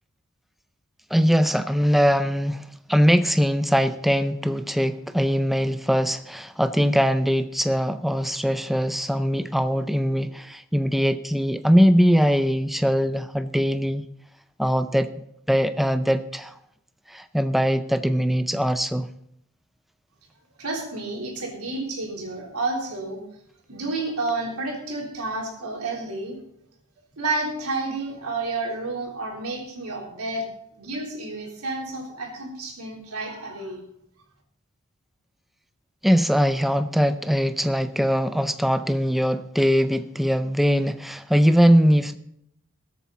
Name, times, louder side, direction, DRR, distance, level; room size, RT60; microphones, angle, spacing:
voice 1, 1.1-14.1 14.6-15.1 15.5-16.5 17.1-19.1 36.0-42.2, equal, ahead, 10 dB, 0.4 m, -21 dB
voice 2, 20.6-23.2 23.7-26.4 27.2-30.5 30.8-33.8, right 3 dB, 85° right, -1 dB, 3.7 m, -30 dB
20.0 x 8.4 x 4.1 m, 0.74 s
head